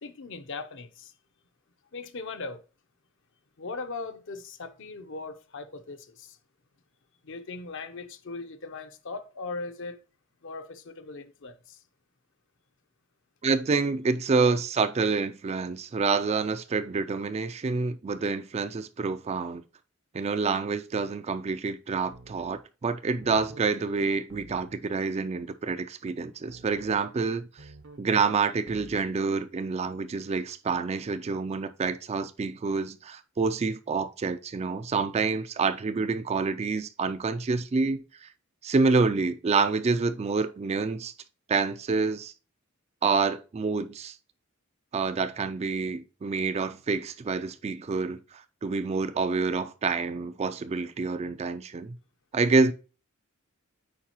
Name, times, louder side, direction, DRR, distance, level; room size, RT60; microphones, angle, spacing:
voice 1, 0.0-1.1 1.9-2.6 3.6-6.4 7.2-10.0 10.4-11.8, left 3 dB, 60° left, 0.8 m, -39 dB
voice 2, 13.4-19.6 20.1-27.7 28.0-38.3 38.6-41.1 41.5-42.3 43.0-44.2 44.9-52.0 52.3-52.7, right 4 dB, 30° right, 0.3 m, -27 dB
sound 1, 22.1-22.6 23.2-23.7 24.3-24.8 26.5-27.0 27.6-28.1 28.7-29.2, right 2 dB, 65° right, 0.8 m, -49 dB
8.5 x 4.6 x 3.0 m
head